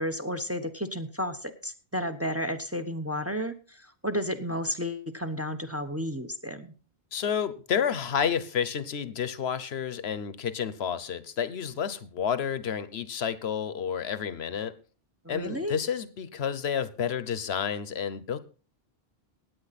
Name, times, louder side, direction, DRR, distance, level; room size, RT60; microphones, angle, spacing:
voice 1, 0.0-6.7 15.2-15.8, equal, 15° right, 0.9 m, -32 dB
voice 2, 7.1-14.7 15.3-18.4, left 8 dB, 85° left, 1.2 m, -30 dB
17.0 x 9.5 x 4.1 m
omnidirectional pair, 1.1 m